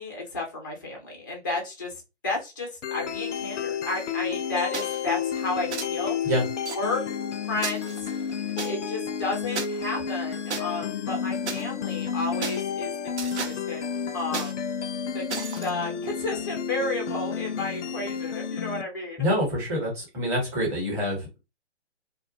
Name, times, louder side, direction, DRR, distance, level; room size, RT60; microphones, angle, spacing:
voice 1, 0.0-6.2 6.7-7.0 7.5-8.1 8.6-13.8 14.1-14.7 15.1-19.2, left 2 dB, 20° left, -1 dB, 0.3 m, -32 dB
sound 1, 2.8-18.8, left 7 dB, 75° left, 0.5 m, -31 dB
sound 2, 4.7-5.0 5.7-5.9 6.7-6.8 7.6-8.7 9.6-9.7 10.5-10.6 11.5-11.6 12.4-12.6 13.2-13.6 14.3-14.5 15.3-15.7, right 5 dB, 65° right, 0.7 m, -33 dB
voice 2, 19.2-21.4, equal, 10° right, -4 dB, 0.8 m, -26 dB
2.2 x 2.2 x 2.6 m, 0.26 s
figure-of-eight pair, 135°, 36 cm